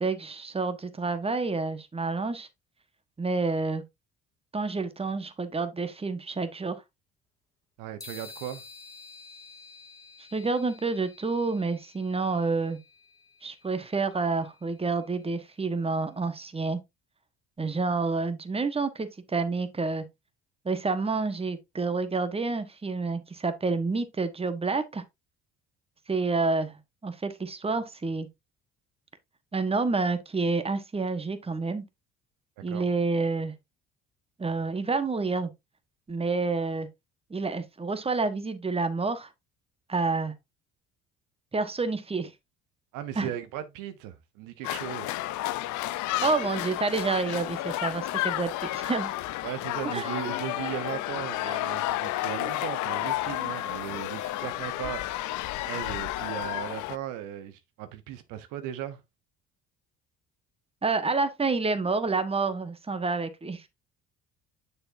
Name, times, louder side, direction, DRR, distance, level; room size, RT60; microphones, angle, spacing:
voice 1, 0.0-2.5 3.2-3.8 4.5-6.8 10.3-12.8 13.4-16.8 17.6-20.0 20.6-25.0 26.1-28.3 29.5-31.8 32.6-33.5 34.4-35.5 36.1-36.9 37.3-39.3 39.9-40.3 41.5-42.3 43.2-43.3 46.2-49.1 49.9-50.1 51.5-51.6 60.8-63.7, right 3 dB, 20° right, 1.3 m, -28 dB
voice 2, 7.8-8.6 32.7-32.9 42.9-45.1 49.4-55.3 55.7-59.0, right 11 dB, 70° right, 1.0 m, -37 dB
sound 1, 8.0-15.7, left 4 dB, 10° left, 2.3 m, -51 dB
sound 2, 44.6-57.0, left 16 dB, 65° left, 0.6 m, -31 dB
6.9 x 6.7 x 2.6 m
hypercardioid pair, 70°, 32 cm